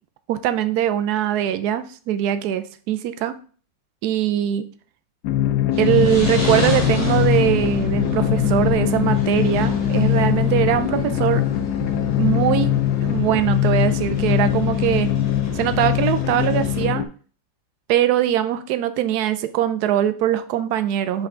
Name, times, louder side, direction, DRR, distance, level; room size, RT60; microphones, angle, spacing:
voice 1, 0.3-3.3 4.0-4.7 5.8-11.4 12.2-15.1 15.5-17.0 17.9-21.3, right 11 dB, 70° right, 11 dB, 1.0 m, -21 dB
sound 1, 5.2-17.1, left 12 dB, 70° left, 1.0 m, -21 dB
sound 2, 5.7-16.8, equal, 55° left, 2.0 m, -29 dB
5.4 x 4.7 x 3.8 m, 0.41 s
omnidirectional pair, 2.0 m